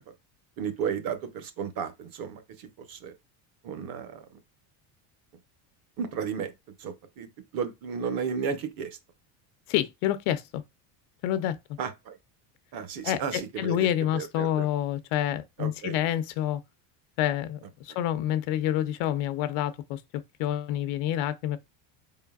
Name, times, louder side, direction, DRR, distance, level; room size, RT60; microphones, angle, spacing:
voice 1, 0.6-3.1 3.6-4.4 6.0-9.0 11.8-12.2 12.7-14.7 15.6-16.0, right 6 dB, 45° right, 0.9 m, -34 dB
voice 2, 9.7-10.6 11.2-11.6 13.0-16.6 17.2-21.6, left 11 dB, 75° left, 0.7 m, -28 dB
4.5 x 3.8 x 2.3 m
cardioid pair, 150°, 49 cm